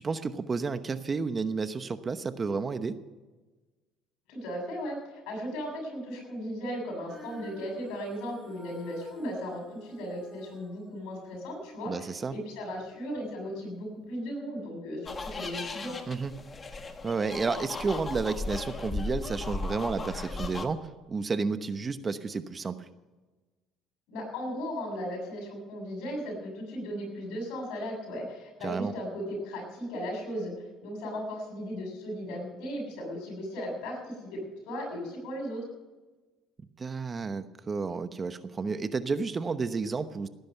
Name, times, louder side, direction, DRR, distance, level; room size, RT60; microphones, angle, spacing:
voice 1, 0.0-2.9 11.9-12.4 16.1-16.3 17.0-20.8 21.1-22.7 28.6-28.9 36.8-40.3, right 4 dB, 30° right, 11 dB, 1.0 m, -31 dB
voice 2, 4.3-16.0 24.1-30.5 30.8-34.4 34.7-35.6, equal, 80° left, 2 dB, 7.2 m, -36 dB
Female singing, 7.0-13.4 14.1-14.2, right 1 dB, 5° right, 5.0 m, -52 dB
sound 1, 15.1-20.7, left 3 dB, 25° left, 1.7 m, -36 dB
18.0 x 10.5 x 6.7 m, 1.2 s
cardioid pair, 105°, 0 cm